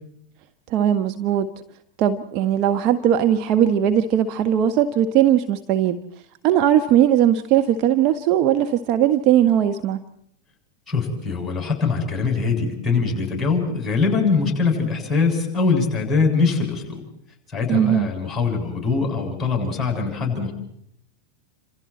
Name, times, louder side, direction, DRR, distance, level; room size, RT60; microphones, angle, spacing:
voice 1, 0.7-1.5 2.0-6.0 6.4-10.0 17.7-18.1, right 10 dB, 40° right, 7 dB, 1.2 m, -19 dB
voice 2, 10.9-17.0 17.5-20.5, left 4 dB, 10° left, 2 dB, 7.4 m, -22 dB
29.5 x 27.0 x 4.4 m, 0.72 s
figure-of-eight pair, 90°, 0 cm